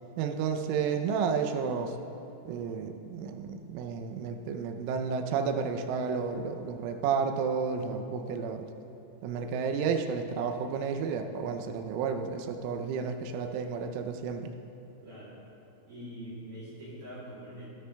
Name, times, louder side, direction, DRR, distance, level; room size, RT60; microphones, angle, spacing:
voice 1, 0.2-2.0 2.5-8.7 9.2-14.5, right 6 dB, 85° right, 5 dB, 3.2 m, -31 dB
voice 2, 15.0-15.4 15.9-17.7, equal, 55° right, -12 dB, 4.7 m, -43 dB
18.0 x 13.0 x 2.3 m, 2.8 s
omnidirectional pair, 5.6 m